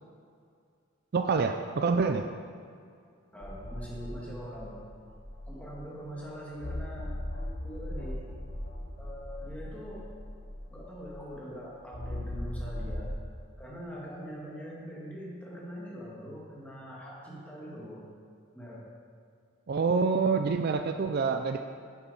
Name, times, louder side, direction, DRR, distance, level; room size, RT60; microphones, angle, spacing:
voice 1, 1.1-2.3 19.7-21.7, right 4 dB, 50° right, 7 dB, 0.4 m, -27 dB
voice 2, 3.3-4.8 5.5-8.3 9.0-10.1 10.7-13.1 13.6-18.0 18.5-18.8, equal, 5° left, -5 dB, 1.8 m, -43 dB
sound 1, 3.4-6.0 6.6-11.3 11.9-13.1, left 1 dB, 45° left, 1.0 m, -39 dB
sound 2, 7.3-12.1, equal, 90° right, 2.5 m, -59 dB
9.5 x 7.2 x 5.5 m, 2.2 s
head